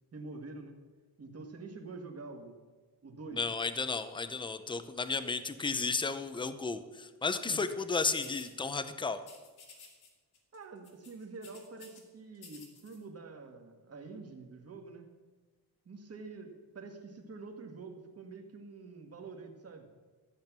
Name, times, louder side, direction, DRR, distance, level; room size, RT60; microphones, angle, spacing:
voice 1, 0.1-0.8 1.2-2.6 3.0-3.4 7.5-7.6 10.5-15.1 15.9-19.9, right 3 dB, 40° right, 4 dB, 1.8 m, -46 dB
voice 2, 3.3-9.2, left 4 dB, 10° left, 11 dB, 0.7 m, -33 dB
sound 1, 8.2-8.5 9.2-10.1 10.3-10.6 10.8-12.0 12.4-13.0, left 4 dB, 70° left, 2.7 m, -53 dB
13.5 x 8.7 x 6.0 m, 1.3 s
cardioid pair, 140°, 39 cm